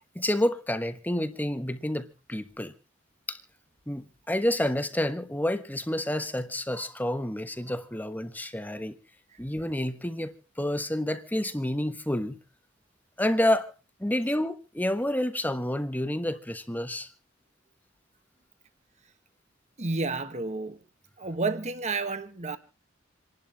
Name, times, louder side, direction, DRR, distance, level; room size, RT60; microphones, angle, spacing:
voice 1, 0.1-2.7 3.3-3.4 3.9-9.0 9.4-12.4 13.2-13.7 14.0-17.1, left 1 dB, 10° left, 1.2 m, -29 dB
voice 2, 19.8-20.8 21.2-22.6, right 3 dB, 35° right, 1.3 m, -30 dB
28.0 x 11.5 x 2.9 m
head